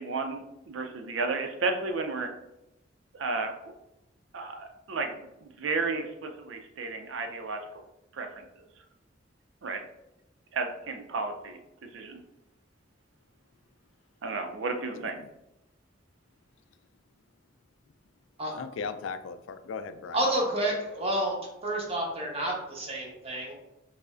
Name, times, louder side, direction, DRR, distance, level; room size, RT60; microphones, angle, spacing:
voice 1, 0.0-2.3 3.1-3.5 4.3-7.6 8.1-8.6 9.6-9.8 10.5-11.6 11.9-12.2 14.2-15.2, right 3 dB, 80° right, 5 dB, 0.5 m, -33 dB
voice 2, 14.9-15.3 18.5-20.3, left 5 dB, 80° left, 10 dB, 0.3 m, -38 dB
voice 3, 20.1-21.4 21.6-23.5, right 1 dB, 30° right, -2 dB, 0.9 m, -29 dB
4.8 x 2.1 x 2.4 m, 0.90 s
head